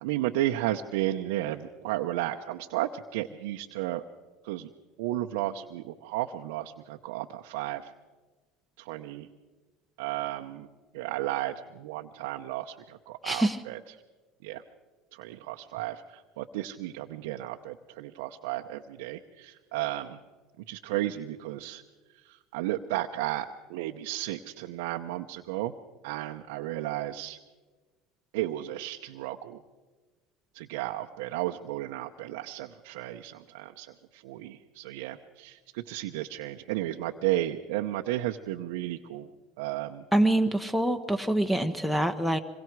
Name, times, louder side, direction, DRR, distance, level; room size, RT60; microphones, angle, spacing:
voice 1, 0.0-4.0 4.4-4.7 5.0-7.9 8.8-9.3 10.0-10.7 10.9-13.8 14.4-14.6 15.1-20.2 20.7-21.8 22.2-25.7 26.0-27.4 28.3-29.6 30.5-39.3 39.6-40.0, right 14 dB, 75° right, 3 dB, 0.8 m, -33 dB
voice 2, 13.2-13.6 40.1-42.4, right 1 dB, 5° left, 10 dB, 1.3 m, -25 dB
26.0 x 22.5 x 4.7 m, 1.3 s
hypercardioid pair, 80°, 0 cm